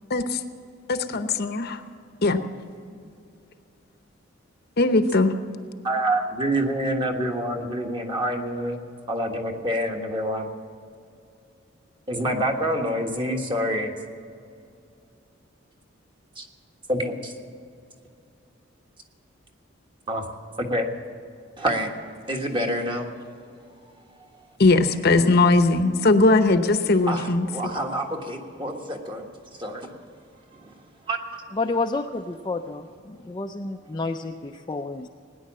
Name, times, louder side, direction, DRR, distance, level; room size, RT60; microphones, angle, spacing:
voice 1, 0.1-0.4 0.9-1.8 2.2-2.4 4.8-5.3 24.6-27.5, left 2 dB, 50° left, 9 dB, 0.8 m, -19 dB
voice 2, 5.8-8.8 9.1-10.5 12.1-13.9 16.3-16.4 16.9-17.3 20.1-20.3 20.6-20.9 21.6-21.9 22.3-23.1 27.1-30.0 30.5-31.4, right 1 dB, 25° right, 2 dB, 1.4 m, -27 dB
voice 3, 31.5-35.1, left 3 dB, 20° left, 3 dB, 0.4 m, -30 dB
18.5 x 10.0 x 7.4 m, 2.4 s
head